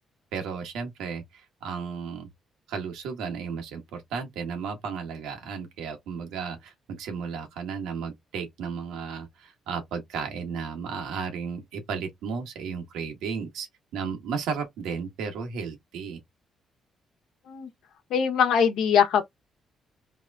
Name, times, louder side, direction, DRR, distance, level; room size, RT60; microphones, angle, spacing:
voice 1, 0.3-2.3 2.7-13.7 13.9-16.2, right 6 dB, 90° right, 1.5 m, -34 dB
voice 2, 18.1-19.2, left 7 dB, 80° left, 1.0 m, -22 dB
3.4 x 2.5 x 3.4 m
cardioid pair, 90°, 0 cm